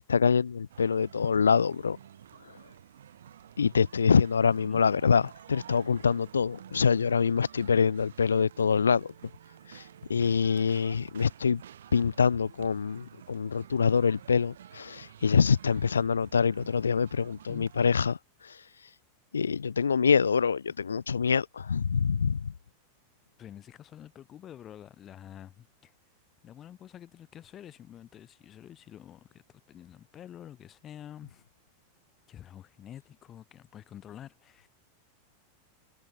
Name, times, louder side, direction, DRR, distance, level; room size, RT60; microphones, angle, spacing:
voice 1, 0.0-2.0 3.6-9.1 9.7-9.8 10.1-11.6 11.9-18.2 18.4-18.5 19.3-22.5, left 6 dB, 70° left, 1.5 m, -25 dB
sound 1, 0.7-17.9, right 10 dB, 65° right, 3.6 m, -51 dB
voice 2, 23.4-25.9 26.4-31.5 32.3-34.7, left 10 dB, 30° left, 7.5 m, -48 dB
figure-of-eight pair, 90°, 0 cm